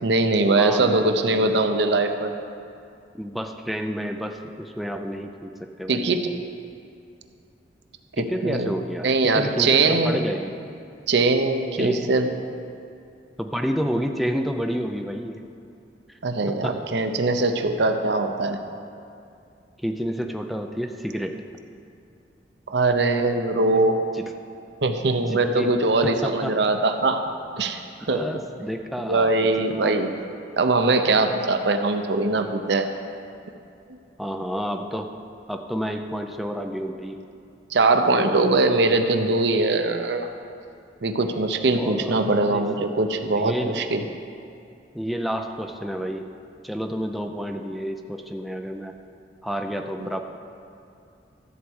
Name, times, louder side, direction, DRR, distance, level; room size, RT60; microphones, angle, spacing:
voice 1, 0.0-2.3 5.9-6.3 8.2-8.7 9.0-10.2 11.1-12.3 16.2-18.6 22.7-24.0 24.8-27.3 27.6-27.8 28.1-28.3 29.0-30.1 30.6-32.9 37.7-40.3 41.0-44.0 50.0-50.1, right 3 dB, 70° right, 7 dB, 0.7 m, -21 dB
voice 2, 0.5-1.6 3.1-6.1 8.2-10.5 11.8-12.1 13.4-15.4 16.1-16.2 16.6-16.8 19.8-21.3 24.1-24.3 25.3-25.7 26.0-26.6 28.0-29.9 34.2-35.1 35.5-37.2 41.8-42.2 42.5-42.8 43.3-43.8 44.9-46.3 46.6-48.9 49.4-50.2, equal, ahead, 4 dB, 0.4 m, -30 dB
13.5 x 4.6 x 7.9 m, 2.5 s
head